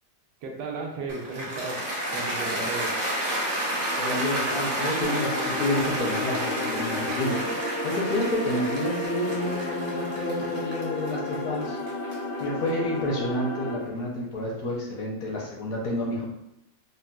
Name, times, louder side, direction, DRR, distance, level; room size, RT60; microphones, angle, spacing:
voice 1, 0.4-3.0, right 3 dB, 80° right, 1 dB, 1.2 m, -35 dB
Cheering / Applause, 1.1-13.3, right 1 dB, 50° right, 0.6 m, -31 dB
voice 2, 4.0-11.8 12.4-16.3, left 1 dB, 65° left, -2 dB, 1.1 m, -29 dB
sound 1, 5.0-13.8, left 2 dB, 85° left, 1.4 m, -33 dB
3.9 x 2.2 x 2.2 m, 0.85 s
omnidirectional pair, 1.8 m